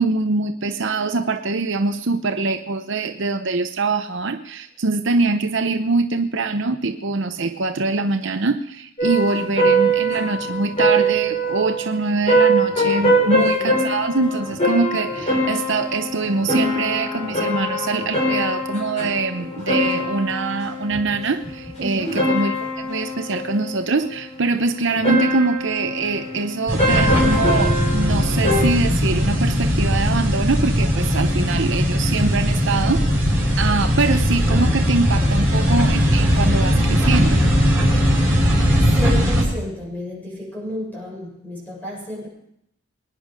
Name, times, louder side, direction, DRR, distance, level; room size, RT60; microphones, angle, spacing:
voice 1, 0.0-37.4, right 3 dB, 55° right, 0.8 m, -23 dB
sound 1, 9.0-28.6, right 1 dB, 30° left, 5.4 m, -23 dB
voice 2, 13.2-13.9 21.8-22.3 38.0-38.5 39.0-42.3, left 1 dB, 10° left, 7.4 m, -32 dB
sound 2, 26.7-39.4, equal, 10° right, 7.0 m, -19 dB
23.5 x 10.0 x 5.2 m
head